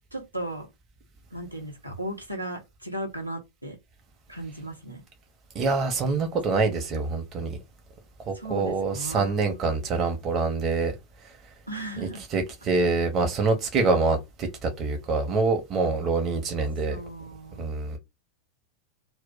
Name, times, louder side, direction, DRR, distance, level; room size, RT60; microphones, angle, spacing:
voice 1, 0.1-0.7 1.3-3.8 4.3-5.0 8.3-9.4 11.7-12.2 16.9-17.7, right 1 dB, 90° right, 0.9 m, -36 dB
voice 2, 5.5-7.6 8.3-10.9 12.3-17.0 17.6-18.0, right 3 dB, 30° right, 0.8 m, -25 dB
2.3 x 2.1 x 3.8 m
figure-of-eight pair, 90°, 0 cm